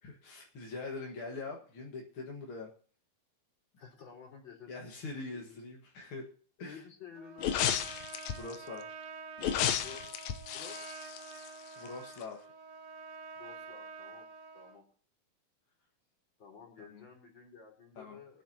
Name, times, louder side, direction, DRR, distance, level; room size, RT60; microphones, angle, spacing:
voice 1, 0.0-2.7 4.7-6.3 6.6-6.8 8.3-8.9 11.8-12.5 16.9-17.1 18.0-18.4, left 3 dB, 45° left, -1 dB, 1.9 m, -43 dB
voice 2, 1.2-1.6 3.8-4.8 5.3-5.6 6.6-7.7 9.8-10.9 13.3-14.3 14.5-14.9 16.4-18.4, left 6 dB, 30° left, 1 dB, 4.3 m, -52 dB
Trumpet, 7.2-14.8, right 5 dB, 80° right, 3.2 m, -48 dB
sound 1, 7.4-8.6 9.4-11.9 12.2-12.3, left 9 dB, 75° left, 1.7 m, -33 dB
24.0 x 9.1 x 2.8 m, 0.43 s
omnidirectional pair, 4.2 m